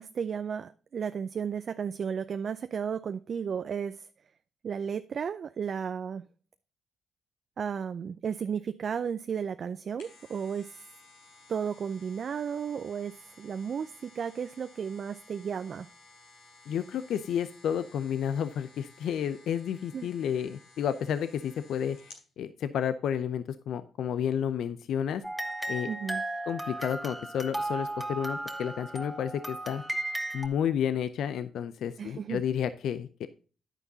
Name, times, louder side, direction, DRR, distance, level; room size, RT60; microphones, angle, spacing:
voice 1, 0.0-4.0 4.6-6.2 7.6-10.7 11.5-13.1 13.4-15.9 19.9-20.1 25.9-26.2 32.0-32.4, right 7 dB, 55° right, 0.5 m, -33 dB
sound 1, 9.7-22.3 22.7-22.8, left 3 dB, 90° left, 3.8 m, -56 dB
voice 2, 16.7-22.0 22.4-25.2 25.7-25.9 26.5-29.8 30.3-33.3, left 8 dB, 70° left, 0.5 m, -31 dB
sound 2, 25.2-30.5, right 1 dB, ahead, 1.6 m, -35 dB
10.0 x 9.1 x 2.8 m
hypercardioid pair, 50°, 0 cm